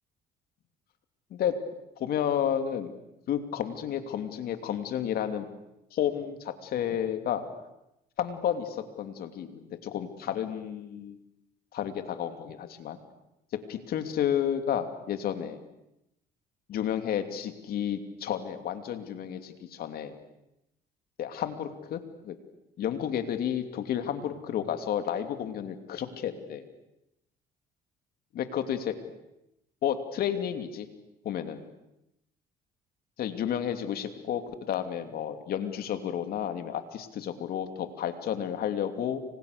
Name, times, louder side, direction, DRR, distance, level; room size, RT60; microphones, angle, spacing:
voice 1, 2.0-2.9 3.3-5.5 5.9-7.5 8.2-11.2 11.7-13.0 13.7-15.6 16.7-20.2 21.2-22.3 22.8-26.6 28.4-29.0 29.8-30.9 31.2-31.6 33.2-39.2, left 9 dB, 65° left, 8 dB, 2.9 m, -31 dB
30.0 x 25.5 x 6.8 m, 0.87 s
cardioid pair, 110°, 17 cm